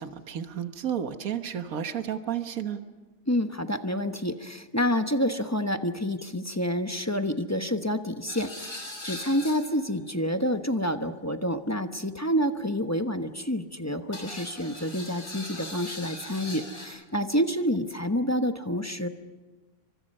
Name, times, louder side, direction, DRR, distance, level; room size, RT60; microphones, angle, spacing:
voice 1, 0.0-2.8, right 9 dB, 75° right, 8 dB, 1.7 m, -32 dB
voice 2, 3.3-19.1, equal, 15° left, 7 dB, 0.9 m, -28 dB
sound 1, 8.3-9.9 14.1-16.9, left 1 dB, 75° left, 7.5 m, -40 dB
29.0 x 25.0 x 5.5 m, 1.2 s
omnidirectional pair, 1.5 m